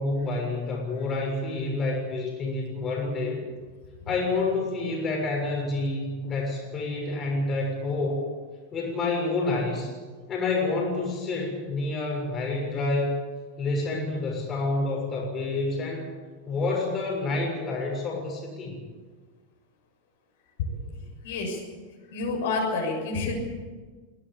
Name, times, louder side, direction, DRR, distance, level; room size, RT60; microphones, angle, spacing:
voice 1, 0.0-3.4 4.0-8.3 8.7-9.9 10.3-13.1 13.6-16.1 16.5-18.7, left 2 dB, 25° left, 0 dB, 6.5 m, -28 dB
voice 2, 21.2-21.6 22.1-23.4, left 3 dB, 55° left, 0 dB, 6.8 m, -28 dB
22.0 x 17.0 x 8.7 m, 1.4 s
figure-of-eight pair, 90°, 0 cm